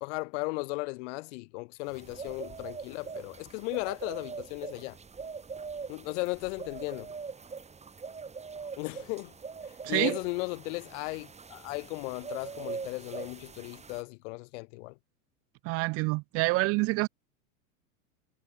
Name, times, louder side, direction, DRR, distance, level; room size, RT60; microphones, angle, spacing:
voice 1, 0.0-5.0 5.9-7.1 8.8-9.3 9.6-15.0, left 27 dB, 55° left, 1.6 m, -36 dB
sound 1, 1.9-14.0, right 5 dB, 15° right, 4.4 m, -42 dB
voice 2, 9.8-10.1 15.6-17.1, right 25 dB, 35° right, 0.5 m, -27 dB
hypercardioid pair, 115°, 42 cm